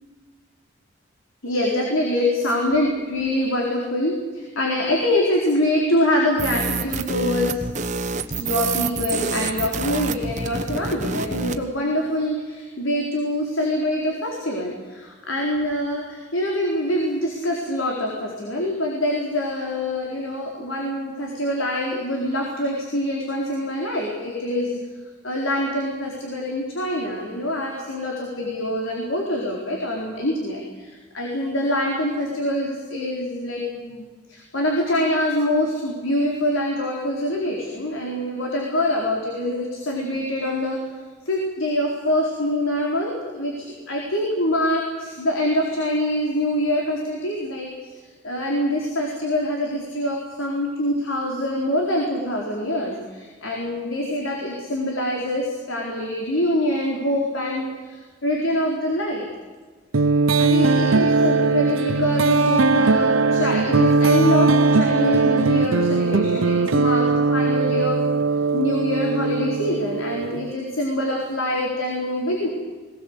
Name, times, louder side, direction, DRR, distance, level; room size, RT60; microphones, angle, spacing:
voice 1, 1.4-7.6 8.4-24.8 25.2-40.8 41.3-47.9 48.2-59.3 60.4-68.0 68.5-72.5, left 1 dB, 85° left, -1 dB, 4.3 m, -25 dB
sound 1, 6.4-11.6, right 4 dB, 35° right, 1.3 m, -27 dB
sound 2, 59.9-70.5, right 3 dB, 80° right, 0.7 m, -19 dB
22.0 x 18.5 x 8.2 m, 1.4 s
head